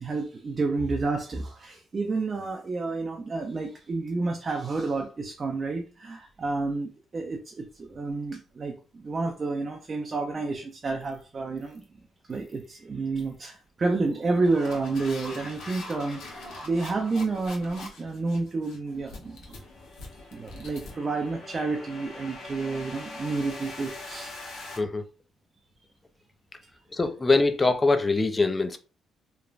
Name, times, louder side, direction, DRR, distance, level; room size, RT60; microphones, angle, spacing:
voice 1, 0.0-11.8 12.3-19.6 20.3-24.4, right 3 dB, 35° right, 0.4 m, -30 dB
sound 1, 11.0-11.2 11.6-11.8 12.3-12.6 13.2-13.4 14.1-24.8, left 2 dB, 80° left, 0.8 m, -42 dB
voice 2, 26.9-28.8, left 3 dB, 25° left, 0.4 m, -23 dB
3.1 x 2.1 x 2.4 m
cardioid pair, 90°, 0 cm